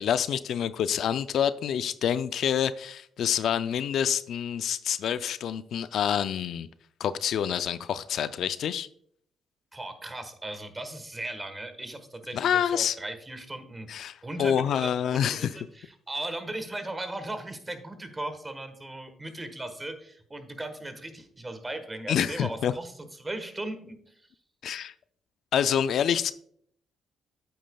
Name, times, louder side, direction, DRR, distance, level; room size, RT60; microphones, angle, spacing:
voice 1, 0.0-6.7 7.0-8.9 12.3-13.0 13.9-15.5 22.1-22.7 24.6-24.9 25.5-26.3, left 9 dB, 70° left, 0.4 m, -27 dB
voice 2, 9.7-13.9 14.2-15.5 15.7-22.9 23.2-24.0, right 1 dB, 20° right, 1.3 m, -37 dB
8.9 x 8.5 x 2.3 m
cardioid pair, 90°, 0 cm